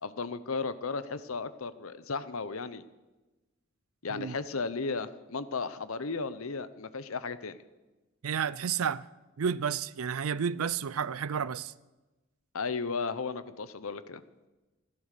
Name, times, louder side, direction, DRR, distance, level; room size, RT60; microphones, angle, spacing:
voice 1, 0.0-2.8 4.0-7.6 12.5-14.2, left 4 dB, 80° left, 0.8 m, -35 dB
voice 2, 8.2-9.1 9.4-11.7, right 7 dB, 85° right, 0.5 m, -31 dB
15.0 x 12.5 x 6.6 m
head